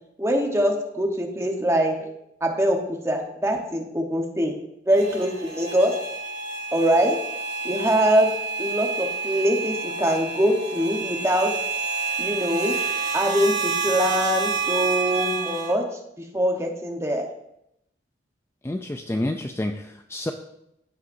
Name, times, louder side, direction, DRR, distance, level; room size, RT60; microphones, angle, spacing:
voice 1, 0.2-2.1 2.4-4.5 4.9-6.0 6.7-7.2 7.6-11.5 12.2-12.8 13.1-15.9 16.3-17.3, equal, 15° right, 2 dB, 1.0 m, -23 dB
sound 1, 4.9-15.7, right 4 dB, 85° right, 2.1 m, -29 dB
voice 2, 18.6-20.3, left 1 dB, 15° left, 5 dB, 0.3 m, -29 dB
15.0 x 5.7 x 2.6 m, 0.81 s
head